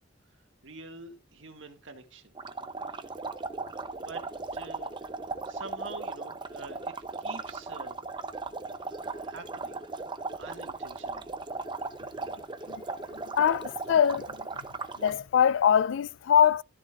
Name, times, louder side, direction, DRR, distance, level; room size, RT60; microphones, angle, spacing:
voice 1, 0.6-2.3 3.6-4.2 4.5-5.0 5.4-8.0 8.8-9.8 10.4-11.3 12.2-12.4, right 3 dB, 85° right, 1.8 m, -46 dB
sound 1, 2.4-15.2, right 3 dB, 25° right, 0.6 m, -37 dB
voice 2, 13.4-14.4 15.0-16.6, left 8 dB, 80° left, 0.3 m, -23 dB
13.0 x 7.2 x 2.4 m
head